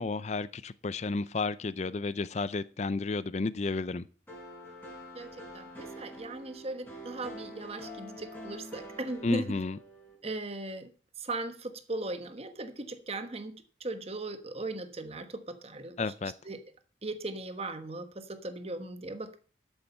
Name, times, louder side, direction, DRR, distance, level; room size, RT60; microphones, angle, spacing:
voice 1, 0.0-4.0 9.2-9.8 16.0-16.3, left 3 dB, 35° left, 0.4 m, -32 dB
sound 1, 4.3-10.2, equal, 10° left, 4.3 m, -46 dB
voice 2, 5.5-9.6 10.2-10.9 11.2-13.5 13.8-16.0 16.4-16.6 17.0-19.4, right 2 dB, 30° right, 1.2 m, -38 dB
12.5 x 7.1 x 5.4 m
head